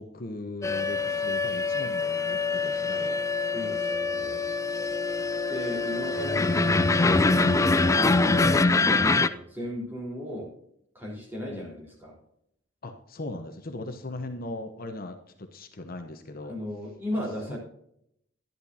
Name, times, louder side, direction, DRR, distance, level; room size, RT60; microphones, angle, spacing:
voice 1, 0.0-3.2 11.5-11.8 12.8-16.6 17.1-17.2 17.5-17.6, left 2 dB, 50° left, 6 dB, 0.9 m, -39 dB
sound 1, 0.6-9.3, left 3 dB, 15° left, 0.4 m, -24 dB
voice 2, 3.5-4.8 5.5-10.5 10.9-12.2 16.5-17.6, equal, 10° right, -3 dB, 3.9 m, -37 dB
12.0 x 11.0 x 2.7 m, 0.74 s
head